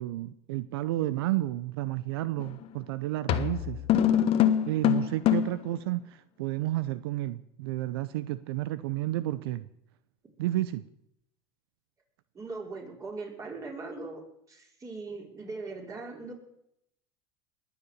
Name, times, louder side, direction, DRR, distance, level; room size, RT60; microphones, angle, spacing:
voice 1, 0.0-3.8 4.6-9.7 10.4-10.9, right 15 dB, 85° right, 0.7 m, -31 dB
sound 1, 2.4-2.6 3.3-5.7, left 10 dB, 50° left, 1.2 m, -24 dB
voice 2, 12.3-14.2 14.5-16.3, right 3 dB, 25° right, 4.9 m, -40 dB
21.0 x 7.1 x 8.1 m
supercardioid pair, 110°, 12 cm